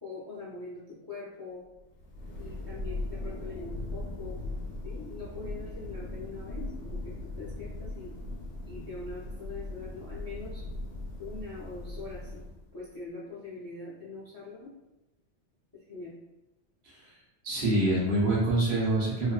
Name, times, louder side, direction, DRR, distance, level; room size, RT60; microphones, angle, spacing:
voice 1, 0.0-1.6 2.4-4.4 4.8-8.1 8.6-10.6 11.2-12.4 12.7-14.7 15.9-16.1, left 3 dB, 30° left, -8 dB, 0.4 m, -43 dB
Thunder, 1.8-12.8, left 2 dB, 80° left, 0.9 m, -39 dB
voice 2, 17.4-19.3, right 2 dB, 60° right, -6 dB, 1.0 m, -26 dB
2.6 x 2.3 x 2.2 m, 0.98 s
omnidirectional pair, 1.2 m